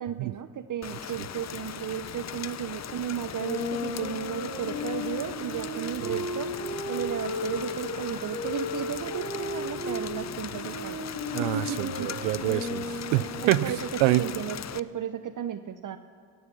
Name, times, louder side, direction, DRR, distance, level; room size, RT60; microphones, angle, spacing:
voice 1, 0.0-6.5 6.9-11.0 11.4-12.1 13.4-16.0, right 10 dB, 45° right, 11 dB, 0.8 m, -34 dB
Rain, 0.8-14.8, left 9 dB, 40° left, 0.6 m, -39 dB
sound 1, 3.4-10.1 10.5-13.5, left 2 dB, 75° left, 3.9 m, -35 dB
voice 2, 11.3-12.8 13.1-13.7 14.0-14.2, right 18 dB, 85° right, 19 dB, 0.6 m, -26 dB
17.5 x 13.5 x 6.0 m, 2.2 s
hypercardioid pair, 45°, 44 cm